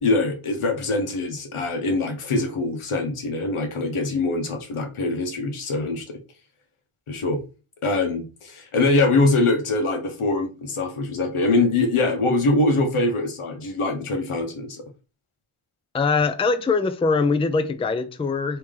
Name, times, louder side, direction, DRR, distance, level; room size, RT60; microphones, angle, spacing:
voice 1, 0.0-6.2 7.1-7.4 7.8-14.8, left 2 dB, 80° left, 1.0 m, -23 dB
voice 2, 15.9-18.6, left 4 dB, 15° left, 0.4 m, -22 dB
3.1 x 2.8 x 3.6 m
cardioid pair, 40°, 50 cm